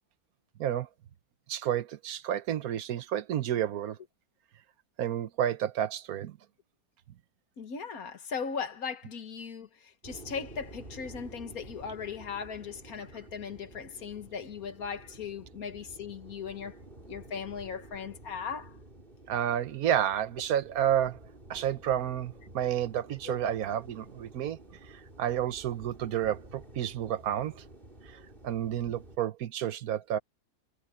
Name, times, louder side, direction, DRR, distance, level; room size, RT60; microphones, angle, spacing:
voice 1, 0.6-0.9 1.5-4.0 5.0-6.3 19.3-21.2 21.5-24.6 24.9-27.6 28.1-30.2, right 10 dB, 80° right, 1.4 m, -30 dB
voice 2, 7.6-16.8 17.1-18.8 23.3-23.4, left 6 dB, 85° left, 1.9 m, -38 dB
sound 1, 10.0-29.2, right 1 dB, 35° right, 4.6 m, -51 dB
omnidirectional pair, 1.5 m